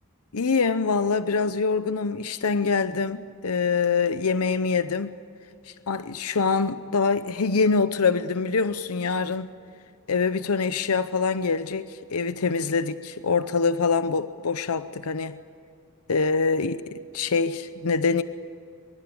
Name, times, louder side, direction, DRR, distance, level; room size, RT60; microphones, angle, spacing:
voice 1, 0.3-5.1 5.6-9.5 10.1-15.4 16.1-18.2, left 4 dB, 75° left, 12 dB, 0.7 m, -25 dB
24.0 x 23.0 x 8.7 m, 2.5 s
head